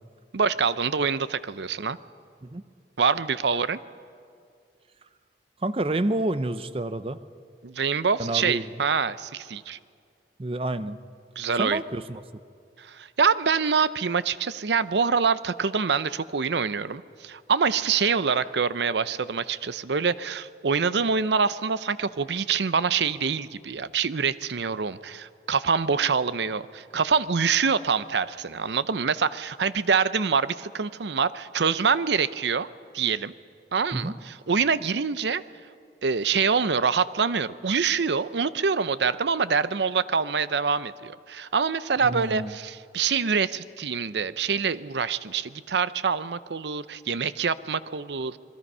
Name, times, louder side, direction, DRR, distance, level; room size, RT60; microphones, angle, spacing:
voice 1, 0.3-2.0 3.0-3.8 7.6-9.8 11.4-11.8 12.8-32.7 32.9-33.3 33.7-35.4 36.0-48.4, right 5 dB, 80° right, 15 dB, 0.6 m, -25 dB
voice 2, 5.6-7.3 8.2-8.7 10.4-11.0 11.6-12.2 33.9-34.2 42.1-42.5, right 2 dB, 30° right, 13 dB, 0.6 m, -28 dB
27.0 x 21.0 x 5.5 m, 2.2 s
head